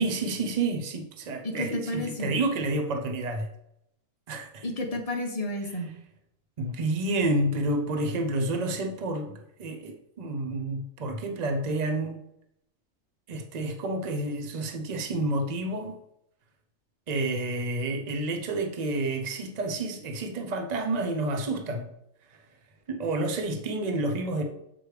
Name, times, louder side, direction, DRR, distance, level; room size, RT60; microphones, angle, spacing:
voice 1, 0.0-3.5 4.3-4.7 6.6-12.2 13.3-16.0 17.1-21.9 22.9-24.4, right 2 dB, 40° right, 5 dB, 0.8 m, -29 dB
voice 2, 1.4-2.4 4.6-5.9, left 1 dB, 35° left, 2 dB, 0.8 m, -31 dB
7.8 x 4.7 x 3.3 m, 0.79 s
omnidirectional pair, 1.3 m